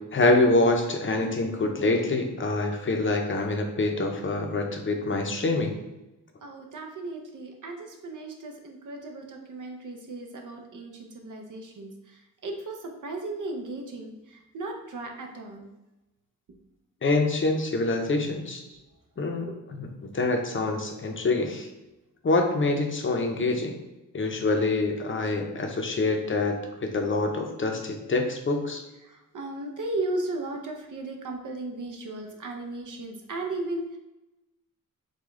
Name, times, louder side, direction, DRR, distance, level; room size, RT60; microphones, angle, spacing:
voice 1, 0.1-5.7 17.0-18.6 19.2-21.7 22.2-23.8 24.1-28.8, left 2 dB, 35° left, 3 dB, 0.6 m, -25 dB
voice 2, 6.4-15.7 18.7-18.8 19.4-19.5 29.0-34.0, right 2 dB, 65° right, 2 dB, 0.6 m, -36 dB
4.8 x 2.2 x 3.6 m, 1.0 s
wide cardioid pair, 145°, 33 cm